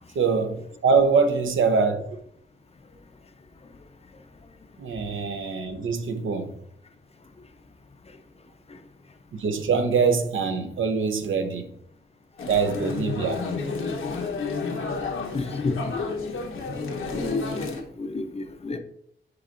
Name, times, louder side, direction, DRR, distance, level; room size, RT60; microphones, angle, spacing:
voice 1, 0.1-2.0 4.8-6.5 9.3-11.7 12.5-13.5, right 5 dB, 75° right, 0.8 m, -24 dB
sound 1, 12.4-17.8, left 4 dB, 85° left, 1.0 m, -31 dB
voice 2, 15.3-16.0 17.1-18.8, left 3 dB, 30° left, 0.6 m, -30 dB
9.7 x 4.6 x 2.5 m
wide cardioid pair, 110°, 20 cm